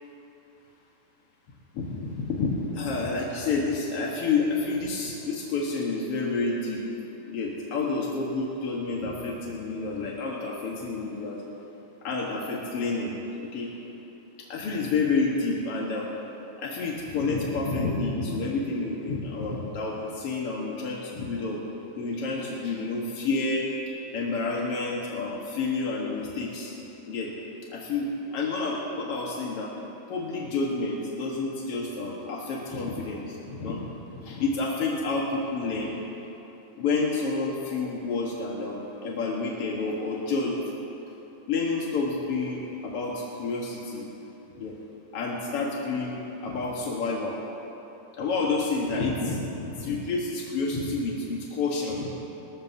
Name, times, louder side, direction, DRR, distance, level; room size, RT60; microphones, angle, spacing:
voice 1, 1.7-6.8 7.3-11.4 12.0-13.1 13.5-13.7 14.5-16.1 16.6-21.6 22.0-23.6 24.1-26.7 27.1-27.3 27.7-29.7 30.1-33.8 34.1-35.9 36.8-40.6 41.5-44.1 44.6-44.7 45.1-47.4 48.2-52.1, left 3 dB, 60° left, -3 dB, 1.5 m, -29 dB
20.5 x 20.0 x 2.8 m, 3.0 s
omnidirectional pair, 4.7 m